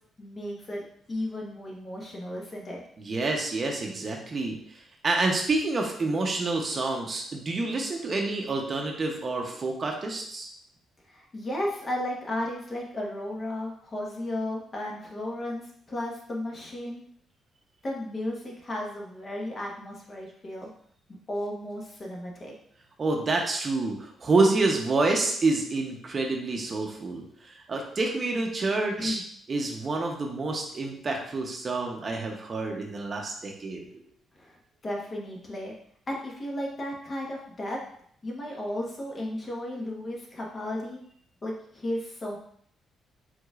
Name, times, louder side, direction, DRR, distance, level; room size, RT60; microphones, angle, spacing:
voice 1, 0.2-2.8 11.1-17.0 17.8-20.7 21.3-22.5 28.6-28.7 29.0-29.2 34.4-34.6 34.8-35.7 36.1-37.8 38.2-41.0 41.4-42.4, left 1 dB, 35° left, -2 dB, 1.2 m, -34 dB
voice 2, 3.0-10.5 23.0-29.2 29.5-34.0, right 3 dB, 40° right, 2 dB, 0.8 m, -28 dB
4.8 x 3.7 x 2.4 m, 0.64 s
cardioid pair, 90°, 0 cm